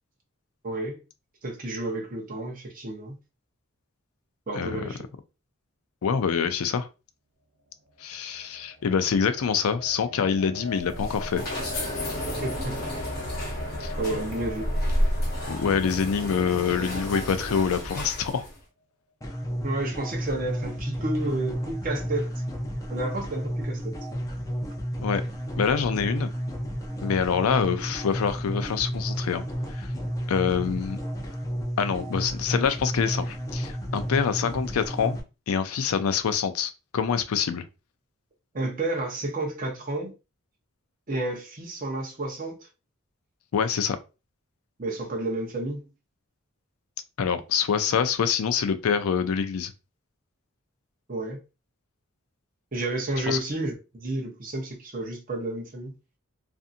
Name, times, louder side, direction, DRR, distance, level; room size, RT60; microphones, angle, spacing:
voice 1, 0.6-1.0 1.4-3.2 4.5-5.0 12.4-12.8 14.0-14.7 19.6-22.3 22.9-24.0 38.5-40.1 41.1-42.7 44.8-45.9 51.1-51.4 52.7-55.9, right 2 dB, 40° right, 0.7 m, -31 dB
voice 2, 6.0-6.9 8.0-11.4 13.8-13.9 15.5-18.5 25.0-25.2 25.6-26.3 27.0-29.4 29.7-29.9 30.3-31.0 31.8-35.2 35.5-37.6 43.5-44.0 47.2-49.7 53.3-53.4, left 6 dB, 85° left, 0.4 m, -26 dB
sound 1, 7.9-18.1, left 1 dB, 85° right, 0.7 m, -42 dB
sound 2, 10.7-18.6, equal, 45° left, 0.8 m, -31 dB
sound 3, 19.2-35.2, equal, 15° left, 0.4 m, -32 dB
2.7 x 2.5 x 2.4 m
head